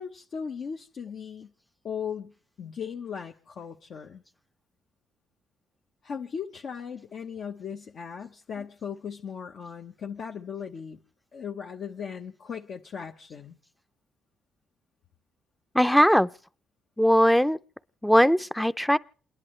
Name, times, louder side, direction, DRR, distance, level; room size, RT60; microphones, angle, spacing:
voice 1, 0.0-1.5 1.8-4.2 6.0-11.0 11.3-13.6, left 7 dB, 60° left, 1.0 m, -37 dB
voice 2, 15.7-16.3 17.0-17.6 18.0-19.0, equal, 5° left, 0.6 m, -20 dB
29.0 x 10.5 x 3.2 m
cardioid pair, 90°, 0 cm